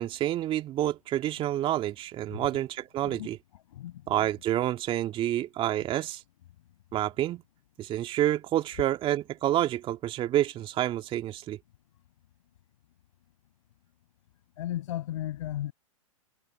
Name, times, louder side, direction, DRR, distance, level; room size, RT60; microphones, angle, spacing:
voice 1, 0.0-3.4 4.1-6.2 6.9-7.4 7.8-11.6, right 13 dB, 30° right, 2.2 m, -28 dB
voice 2, 3.5-4.3 14.6-15.7, left 13 dB, 65° left, 6.1 m, -35 dB
hypercardioid pair, 110°, 18 cm